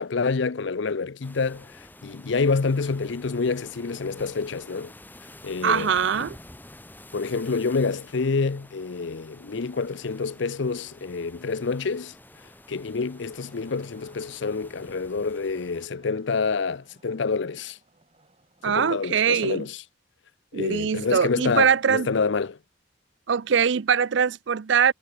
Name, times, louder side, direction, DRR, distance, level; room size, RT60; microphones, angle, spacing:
voice 1, 0.0-4.9 5.4-6.3 7.1-12.1 12.7-17.8 18.7-19.8 20.5-22.6, left 4 dB, 65° left, 0.6 m, -27 dB
sound 1, 1.2-15.9, left 1 dB, 10° left, 1.3 m, -49 dB
voice 2, 5.6-6.4 18.6-19.7 20.5-22.1 23.3-24.9, right 7 dB, 65° right, 0.5 m, -22 dB
Wood, 12.3-19.1 20.8-22.5, right 2 dB, 30° right, 4.2 m, -61 dB
head